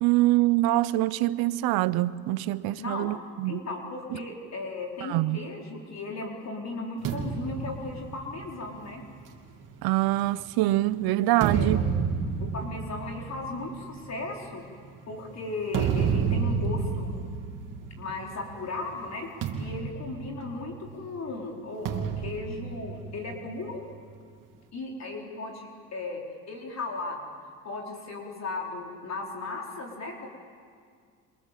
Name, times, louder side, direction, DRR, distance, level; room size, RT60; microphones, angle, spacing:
voice 1, 0.0-3.6 4.1-4.2 5.0-5.4 9.8-11.9, right 17 dB, 70° right, 1.0 m, -25 dB
voice 2, 2.8-3.1 3.5-9.0 11.5-11.8 12.4-14.6 15.1-17.1 18.0-19.3 19.6-23.8 24.7-27.2 27.6-30.3, left 3 dB, 45° left, 4.5 m, -36 dB
sound 1, 7.0-10.6 11.2-18.6 18.8-19.1 19.4-21.0 21.9-23.6, right 6 dB, 55° right, 2.9 m, -31 dB
28.5 x 26.0 x 7.6 m
supercardioid pair, 85°, 38 cm